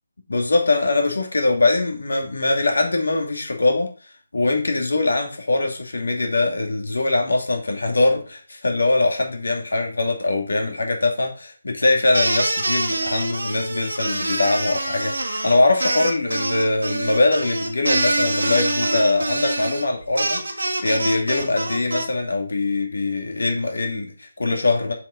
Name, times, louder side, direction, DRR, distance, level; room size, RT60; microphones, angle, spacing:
voice 1, 0.3-3.9 4.3-24.9, left 2 dB, 70° left, 3 dB, 2.4 m, -22 dB
sound 1, 12.1-22.0, right 2 dB, 75° right, 1.7 m, -25 dB
7.1 x 5.3 x 5.0 m, 0.37 s
figure-of-eight pair, 150°, 0 cm